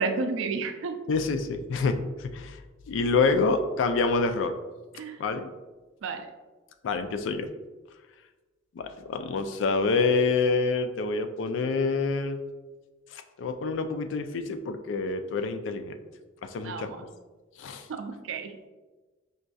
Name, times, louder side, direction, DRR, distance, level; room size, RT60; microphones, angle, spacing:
voice 1, 0.0-1.0 5.0-5.2 6.0-6.3 16.6-17.1 17.9-18.6, right 4 dB, 80° right, 7 dB, 0.4 m, -31 dB
voice 2, 1.1-2.6 2.9-4.5 5.2-5.5 6.8-7.5 8.7-12.4 13.1-15.9 16.4-16.9 17.6-17.9, left 4 dB, 70° left, 7 dB, 0.3 m, -27 dB
5.1 x 2.5 x 2.3 m, 1.2 s
head